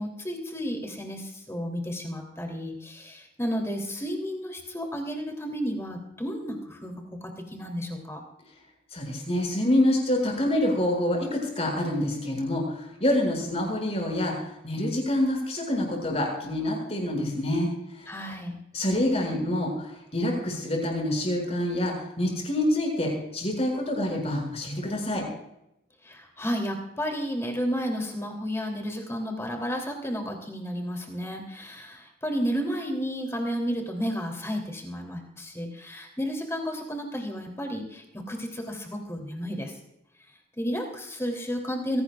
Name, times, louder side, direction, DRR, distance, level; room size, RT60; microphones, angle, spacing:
voice 1, 0.0-8.2 18.1-18.6 26.0-39.7 40.6-42.0, equal, 15° left, 2 dB, 3.3 m, -32 dB
voice 2, 8.9-18.1 18.7-25.2, left 1 dB, 30° left, 0 dB, 6.8 m, -27 dB
23.5 x 18.0 x 2.5 m, 0.82 s
head